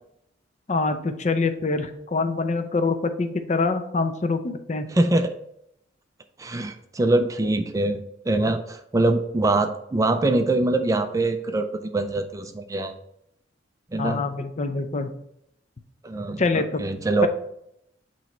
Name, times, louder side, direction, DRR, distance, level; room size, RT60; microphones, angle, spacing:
voice 1, 0.7-4.9 14.0-15.1 16.4-16.8, left 3 dB, 40° left, 8 dB, 0.6 m, -25 dB
voice 2, 4.9-5.3 6.4-12.9 13.9-14.2 16.0-17.3, right 2 dB, 20° right, 8 dB, 0.4 m, -23 dB
8.2 x 3.1 x 4.3 m, 0.77 s
head